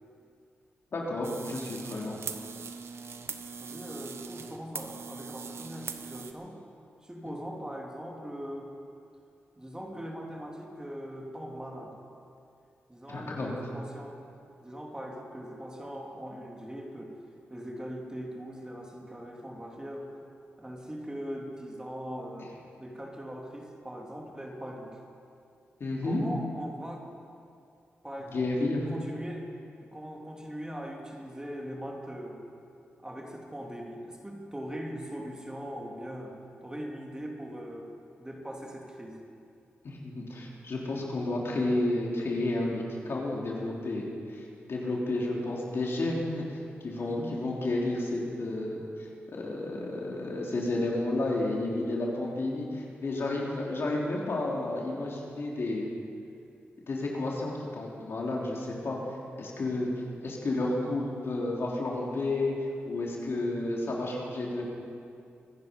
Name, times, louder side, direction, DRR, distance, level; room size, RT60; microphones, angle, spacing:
voice 1, 0.9-2.2 13.1-13.5 25.8-26.2 28.3-28.9 39.8-55.9 56.9-59.0 59.4-59.9 60.2-62.5 62.8-64.6, left 2 dB, 65° left, -3 dB, 3.4 m, -31 dB
sound 1, 1.2-6.3, right 5 dB, 70° right, 1.0 m, -41 dB
voice 2, 3.6-6.6 7.0-8.7 9.6-11.9 12.9-14.2 14.6-17.1 17.5-20.1 20.6-22.5 22.8-25.0 26.0-27.0 28.0-28.5 28.9-29.5 29.9-32.4 33.0-36.4 36.6-37.9 38.2-39.2 47.0-47.3 63.3-63.7, equal, 15° right, 0 dB, 3.0 m, -40 dB
25.0 x 10.5 x 5.3 m, 2.4 s
cardioid pair, 50°, 5 cm